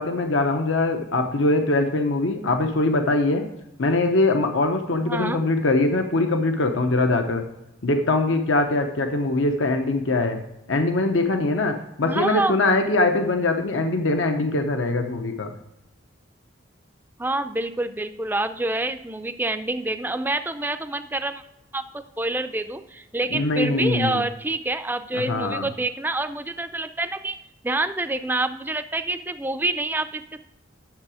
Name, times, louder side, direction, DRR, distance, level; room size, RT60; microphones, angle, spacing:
voice 1, 0.0-3.4 3.8-7.4 7.8-10.4 10.7-15.5 23.3-24.2 25.3-25.7, left 2 dB, 80° left, 5 dB, 0.9 m, -22 dB
voice 2, 5.0-5.4 12.1-12.6 17.2-21.4 21.7-27.4 27.6-30.4, right 2 dB, 10° right, 10 dB, 0.5 m, -27 dB
10.5 x 7.0 x 4.9 m, 0.91 s
head